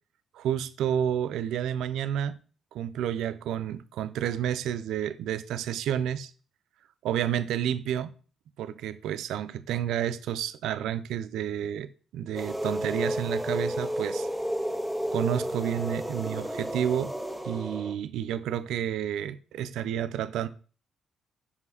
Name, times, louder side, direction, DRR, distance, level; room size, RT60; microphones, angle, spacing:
voice 1, 0.3-2.4 2.7-6.3 7.0-8.1 8.6-14.3 15.1-17.1 17.4-20.5, right 10 dB, 85° right, 0.7 m, -30 dB
sound 1, 12.3-17.9, equal, ahead, 1.9 m, -32 dB
11.0 x 5.1 x 4.1 m
cardioid pair, 90°, 0 cm